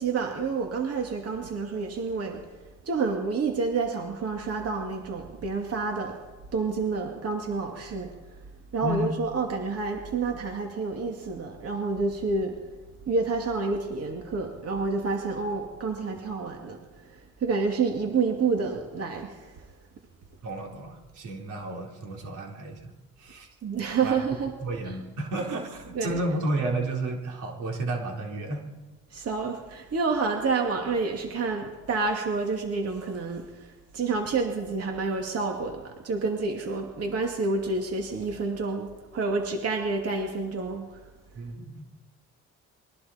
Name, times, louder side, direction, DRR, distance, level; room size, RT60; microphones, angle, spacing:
voice 1, 0.0-2.4 2.9-6.2 6.5-8.1 8.7-12.5 13.1-16.8 17.4-19.4 23.6-24.5 25.9-26.1 29.1-33.5 33.9-40.9, right 4 dB, 50° right, 2 dB, 2.5 m, -28 dB
voice 2, 8.8-9.2 20.4-22.9 23.2-23.5 24.0-24.2 24.6-28.6 41.3-41.8, right 1 dB, 80° right, 0 dB, 4.3 m, -32 dB
27.5 x 22.0 x 4.4 m, 1.2 s
cardioid pair, 90°, 30 cm